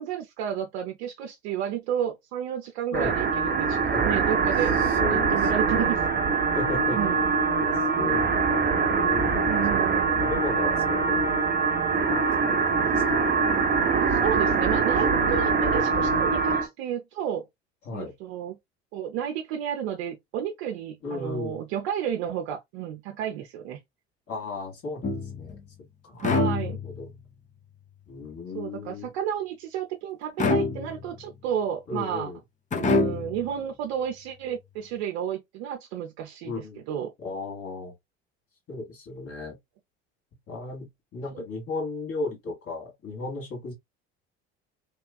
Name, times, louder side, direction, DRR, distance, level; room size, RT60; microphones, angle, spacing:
voice 1, 0.0-4.8 5.1-6.5 6.9-7.3 9.5-10.2 14.1-17.5 17.9-18.6 18.9-23.8 26.2-26.8 28.5-32.3 32.8-37.1 41.3-41.4, right 9 dB, 70° right, 0.6 m, -32 dB
sound 1, 2.9-16.7, right 4 dB, 30° right, 0.8 m, -23 dB
voice 2, 4.8-6.0 6.5-7.0 7.6-8.3 8.9-9.8 10.2-11.4 12.0-13.2 15.1-15.5 17.8-18.1 21.0-21.6 24.3-25.6 26.0-26.2 26.6-27.1 28.1-29.1 31.9-32.4 36.4-36.8 37.2-37.9 38.7-39.6 40.5-43.7, left 3 dB, 45° left, 1.5 m, -35 dB
sound 2, 25.0-25.6 26.2-27.1 30.4-31.2 32.7-33.5, left 3 dB, 25° left, 0.7 m, -26 dB
2.9 x 2.3 x 2.2 m
hypercardioid pair, 65°, 32 cm